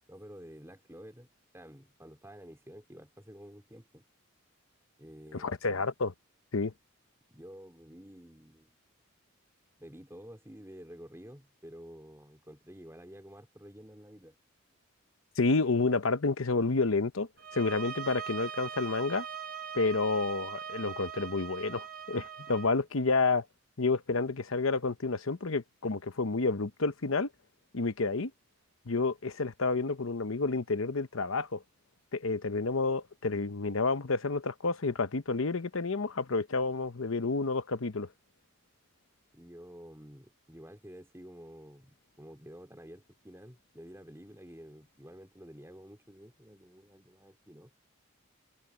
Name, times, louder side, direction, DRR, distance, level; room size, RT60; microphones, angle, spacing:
voice 1, 0.1-1.3 1.5-4.0 5.0-5.6 7.3-8.7 9.8-14.3 39.3-47.7, equal, 10° right, 4.0 m, -50 dB
voice 2, 5.3-6.1 6.5-6.7 15.4-17.3 17.5-19.3 19.7-23.5 23.8-27.3 27.7-28.3 28.9-31.6 32.1-38.1, left 3 dB, 70° left, 0.9 m, -30 dB
sound 1, 17.4-22.7, right 8 dB, 40° right, 1.3 m, -41 dB
head